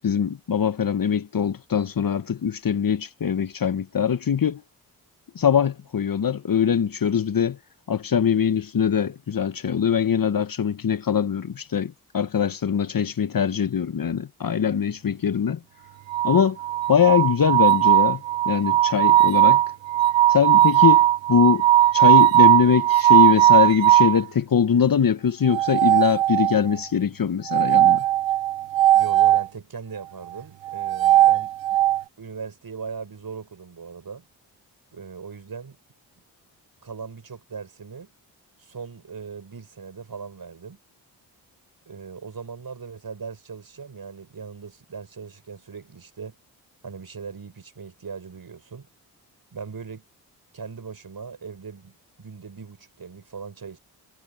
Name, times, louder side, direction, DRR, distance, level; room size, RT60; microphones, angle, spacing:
voice 1, 0.0-4.6 5.3-7.6 7.9-15.6 16.2-16.6 16.9-19.6 20.3-21.6 21.9-28.0, left 7 dB, 50° left, 1.3 m, -22 dB
sound 1, 16.1-24.2 25.5-26.7 27.5-29.5 30.7-32.0, right 13 dB, 75° right, 1.2 m, -18 dB
voice 2, 28.9-31.5 32.2-34.3 34.9-35.8 36.8-38.1 38.6-40.8 41.9-46.4 46.8-48.9 49.5-50.0 50.5-53.8, right 5 dB, 50° right, 6.2 m, -39 dB
supercardioid pair, 40°, 45 cm